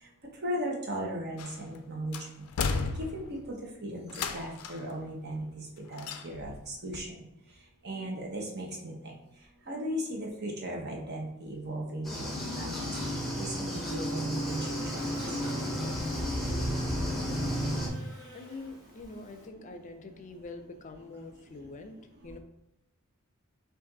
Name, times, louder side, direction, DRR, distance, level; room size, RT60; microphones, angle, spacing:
voice 1, 0.4-2.2 3.0-3.6 3.8-4.1 4.3-5.4 5.9-7.1 7.8-8.9 9.7-14.6 14.9-15.0, equal, 50° right, -1 dB, 1.0 m, -36 dB
sound 1, 1.4-1.8 2.1-3.5 4.1-4.9 6.0-6.6 6.9-7.0, left 5 dB, 90° left, 0.4 m, -34 dB
sound 2, 12.0-17.9, equal, ahead, 0.9 m, -32 dB
Buzz, 12.2-19.5, left 1 dB, 15° right, 1.4 m, -50 dB
voice 2, 17.8-22.4, left 3 dB, 35° left, 7 dB, 0.5 m, -45 dB
5.0 x 2.6 x 3.9 m, 0.88 s
head